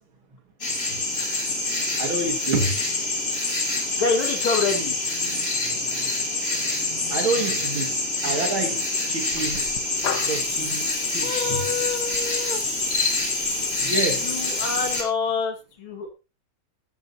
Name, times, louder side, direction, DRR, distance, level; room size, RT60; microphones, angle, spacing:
sound 1, 0.6-15.0, left 2 dB, 30° left, 3.0 m, -26 dB
voice 1, 2.0-2.8 7.1-9.6 10.2-11.6 13.8-14.4, right 3 dB, 70° right, 2.8 m, -28 dB
voice 2, 3.7-5.1 11.2-12.6 14.1-16.1, left 4 dB, 75° left, 2.8 m, -27 dB
Water tap faucet / Liquid, 9.3-15.0, left 7 dB, 55° left, 1.6 m, -36 dB
14.0 x 11.5 x 2.8 m
omnidirectional pair, 2.3 m